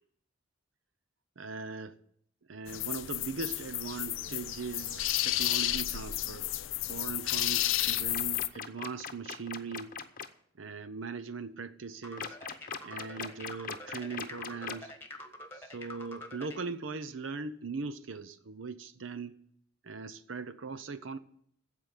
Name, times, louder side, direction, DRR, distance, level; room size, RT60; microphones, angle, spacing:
voice 1, 1.4-2.0 2.5-6.5 6.9-10.0 10.6-12.4 12.8-14.9 15.5-19.4 19.8-21.2, right 4 dB, 75° right, 0.7 m, -40 dB
sound 1, 2.7-8.5, left 14 dB, 85° left, 0.5 m, -32 dB
sound 2, 7.9-10.3 12.2-14.9, left 6 dB, 45° left, 0.8 m, -40 dB
sound 3, 12.0-16.6, left 1 dB, 10° left, 1.3 m, -46 dB
15.5 x 5.1 x 9.3 m
head